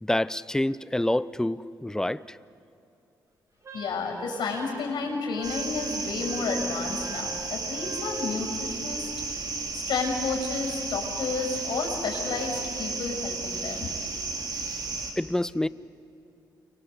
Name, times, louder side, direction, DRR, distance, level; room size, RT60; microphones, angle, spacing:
voice 1, 0.0-2.4 15.2-15.7, left 1 dB, 10° left, 18 dB, 0.6 m, -27 dB
Wind instrument woodwind instrument, 3.6-8.2, right 2 dB, 40° right, 2.5 m, -44 dB
voice 2, 3.7-9.1 9.4-9.5 9.7-13.9, left 4 dB, 75° left, 2 dB, 6.8 m, -31 dB
sound 1, 5.4-15.1, right 3 dB, 60° right, 3.6 m, -33 dB
30.0 x 24.0 x 8.2 m, 2.7 s
cardioid pair, 90°, 8 cm